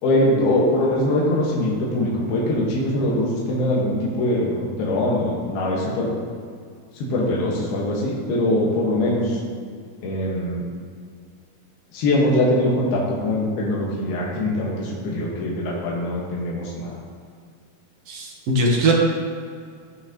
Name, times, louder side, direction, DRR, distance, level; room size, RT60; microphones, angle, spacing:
voice 1, 0.0-6.2 6.9-9.4 10.0-10.6 11.9-17.0, left 1 dB, 80° left, -4 dB, 3.4 m, -22 dB
voice 2, 18.1-18.9, right 1 dB, 65° right, -1 dB, 1.5 m, -20 dB
16.5 x 5.8 x 3.0 m, 2.1 s
omnidirectional pair, 4.3 m